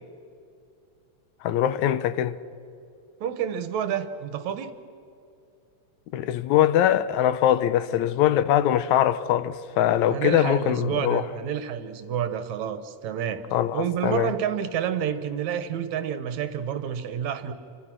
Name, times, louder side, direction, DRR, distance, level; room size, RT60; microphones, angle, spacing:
voice 1, 1.4-2.4 6.1-11.2 13.5-14.3, left 11 dB, 80° left, 2.1 m, -22 dB
voice 2, 3.2-4.7 10.1-13.4 13.7-17.5, right 9 dB, 75° right, 2.5 m, -29 dB
28.0 x 25.5 x 6.1 m
omnidirectional pair, 3.4 m